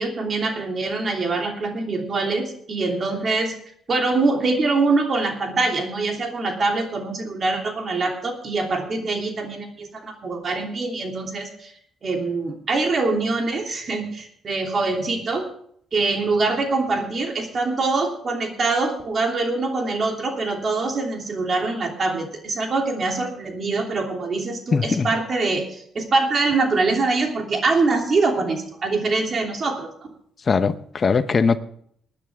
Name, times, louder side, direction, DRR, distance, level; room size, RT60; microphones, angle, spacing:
voice 1, 0.0-3.5 3.9-11.7 12.0-15.5 15.9-29.9, right 3 dB, 45° right, 2 dB, 3.0 m, -24 dB
voice 2, 24.7-25.1 30.5-31.6, left 5 dB, 40° left, 12 dB, 0.8 m, -20 dB
20.0 x 9.9 x 3.6 m, 0.64 s
cardioid pair, 90°, 0 cm